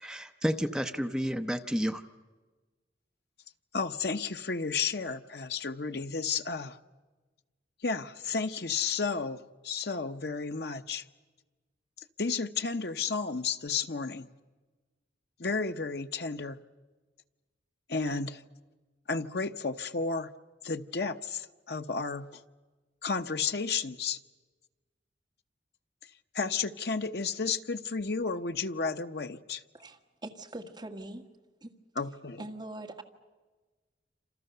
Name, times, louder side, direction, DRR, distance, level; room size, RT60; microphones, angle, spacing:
voice 1, 0.0-2.0, equal, 5° right, 0.8 m, -31 dB
voice 2, 3.7-6.8 7.8-11.0 12.2-14.3 15.4-16.6 17.9-18.4 19.1-20.3 20.6-22.4 23.0-24.2 26.3-29.6 32.0-32.4, left 4 dB, 65° left, 0.9 m, -32 dB
voice 3, 29.7-31.2 31.6-31.7 32.4-33.0, right 1 dB, 25° right, 1.7 m, -42 dB
28.0 x 27.0 x 6.8 m
head